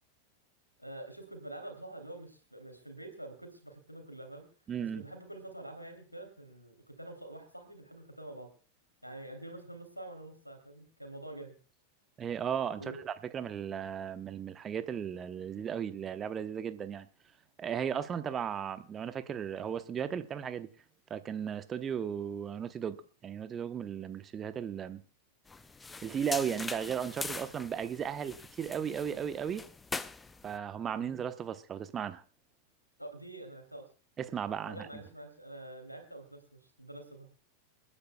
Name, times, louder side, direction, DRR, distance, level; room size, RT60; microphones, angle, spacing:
voice 1, 0.8-4.5 4.8-8.5 9.0-11.6 12.8-13.0 31.0-31.1 33.0-33.9 34.6-37.3, right 1 dB, 90° left, 2.9 m, -46 dB
voice 2, 4.7-5.0 12.2-17.1 17.6-20.7 21.1-23.0 23.2-25.0 26.0-29.6 30.4-32.2 34.2-34.9, right 8 dB, 25° right, 0.9 m, -36 dB
sound 1, 25.5-30.6, left 3 dB, 10° left, 0.5 m, -42 dB
29.0 x 9.8 x 2.2 m
figure-of-eight pair, 90°, 0 cm